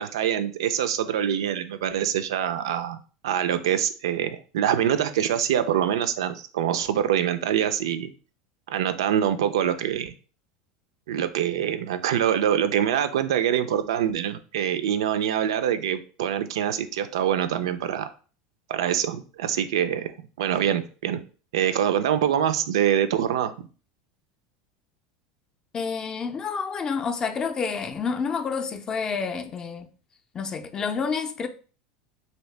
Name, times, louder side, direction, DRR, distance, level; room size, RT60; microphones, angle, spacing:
voice 1, 0.0-3.0 3.2-8.1 8.7-10.1 11.1-18.1 18.7-21.2 21.5-23.5, right 9 dB, 90° right, 0.4 m, -25 dB
voice 2, 25.7-29.9 30.3-31.5, left 5 dB, 25° left, 0.4 m, -29 dB
2.8 x 2.8 x 3.2 m
supercardioid pair, 120°, 3 cm